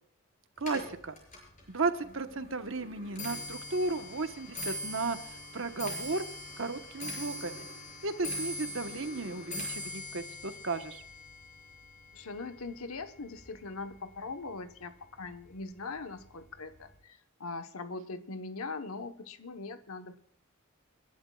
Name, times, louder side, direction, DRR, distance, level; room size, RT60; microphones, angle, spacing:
Clock, 0.6-13.9 14.3-14.7 15.5-15.6 15.9-16.3 16.6-16.7, left 1 dB, 35° left, 6.0 m, -42 dB
voice 1, 0.6-1.2 1.7-6.3 6.6-7.7 8.0-11.0, right 3 dB, 60° right, 9 dB, 1.1 m, -34 dB
voice 2, 12.1-20.2, left 3 dB, 75° left, 9 dB, 1.1 m, -41 dB
29.0 x 11.5 x 2.4 m, 0.68 s
head